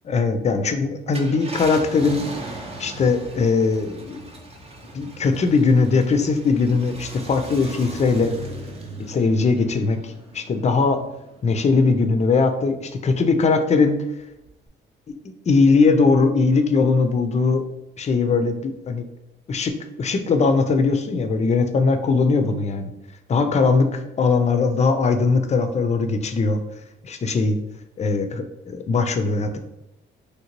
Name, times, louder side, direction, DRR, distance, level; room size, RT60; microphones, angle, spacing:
voice 1, 0.0-2.2 2.8-4.3 4.9-8.3 9.0-10.0 10.3-11.0 11.4-14.0 15.1-15.2 15.5-17.6 18.0-19.0 19.5-22.9 23.3-26.6 27.0-27.6 28.0-29.6, left 4 dB, 35° left, 8 dB, 0.4 m, -20 dB
Car, 1.0-11.8 12.3-12.4 14.4-14.7, right 1 dB, 30° right, 0.6 m, -38 dB
3.2 x 2.7 x 2.9 m, 0.88 s
cardioid pair, 90°, 20 cm